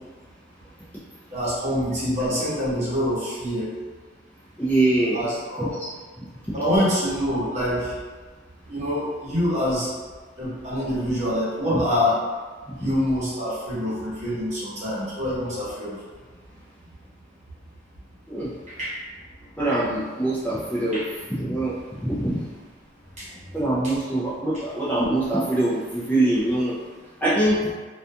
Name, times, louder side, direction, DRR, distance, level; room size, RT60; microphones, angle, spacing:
voice 1, 1.3-3.7 5.1-5.7 6.5-7.9 8.7-9.9 10.4-12.2 12.8-16.0 18.7-18.9 20.9-21.0 23.2-23.3 23.8-23.9, equal, 40° right, -9 dB, 1.0 m, -25 dB
voice 2, 4.6-5.2 5.6-5.7 6.2-6.6 11.7-11.8 12.7-12.9 18.3-18.5 19.6-22.4 23.5-26.8 27.2-27.7, right 1 dB, 10° left, -9 dB, 0.4 m, -24 dB
2.4 x 2.2 x 2.7 m, 1.4 s
head